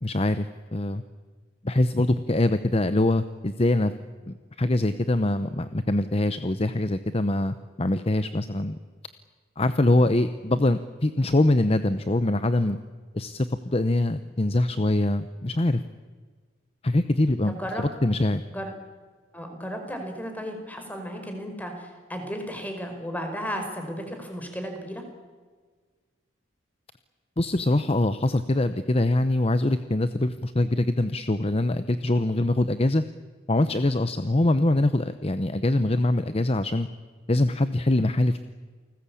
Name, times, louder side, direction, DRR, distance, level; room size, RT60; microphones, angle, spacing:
voice 1, 0.0-1.0 1.6-3.9 4.3-8.8 9.6-12.8 13.1-15.8 16.8-18.4 27.4-33.0 33.5-36.9 37.3-38.4, left 1 dB, 30° left, 11 dB, 0.8 m, -23 dB
voice 2, 17.5-17.8 18.5-18.7 19.3-25.0, equal, 10° left, 5 dB, 4.8 m, -34 dB
29.0 x 19.5 x 8.6 m, 1.5 s
head